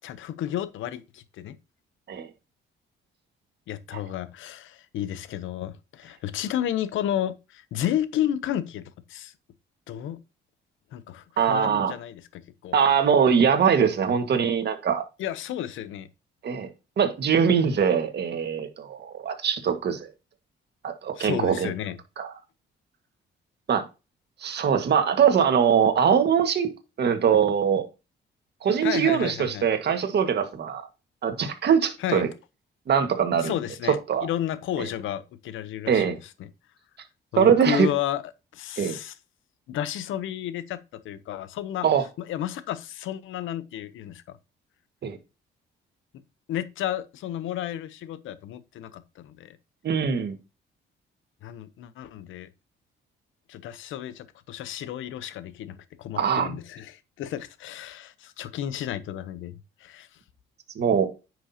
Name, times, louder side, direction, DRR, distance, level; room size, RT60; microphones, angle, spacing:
voice 1, 0.0-1.6 3.7-9.3 9.9-10.2 10.9-12.8 15.2-16.1 21.2-22.0 28.8-29.7 32.0-32.2 33.4-34.0 34.2-36.1 36.4-36.5 37.3-38.2 38.5-39.1 39.7-40.8 41.0-41.9 42.2-44.4 46.5-49.6 51.4-52.5 53.5-60.1, left 11 dB, 80° left, 0.8 m, -32 dB
voice 2, 11.4-11.9 12.7-15.0 16.4-16.7 17.0-20.1 20.8-21.7 22.2-22.3 23.7-23.8 24.4-26.7 27.0-27.9 28.6-30.9 31.2-32.3 32.9-33.5 34.1-34.3 34.8-34.9 35.9-36.2 37.4-37.9 38.8-38.9 41.8-42.0 45.0-45.2 49.8-50.3 56.2-56.5 60.8-61.1, right 7 dB, 55° right, 1.7 m, -22 dB
9.8 x 6.1 x 2.9 m
cardioid pair, 90°, 20 cm